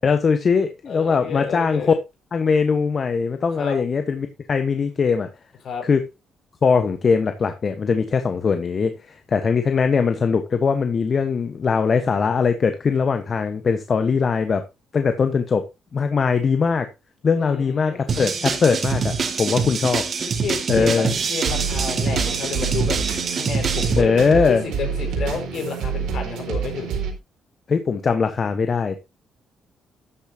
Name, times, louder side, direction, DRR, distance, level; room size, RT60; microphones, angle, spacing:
voice 1, 0.0-1.9 2.3-5.3 5.8-6.0 6.6-14.6 14.9-15.6 15.9-16.9 17.2-20.0 20.7-21.1 24.0-24.6 27.7-29.1, left 5 dB, 45° left, 1.2 m, -21 dB
voice 2, 0.9-1.9 3.6-3.8 5.6-5.8 17.4-18.0 19.4-19.6 20.2-23.0 23.3-26.9, left 5 dB, 65° left, 5.4 m, -30 dB
sound 1, 18.1-24.0, right 5 dB, 50° right, 2.4 m, -24 dB
sound 2, 21.2-27.1, right 6 dB, 85° right, 4.3 m, -27 dB
13.0 x 8.6 x 2.9 m
cardioid pair, 90°, 0 cm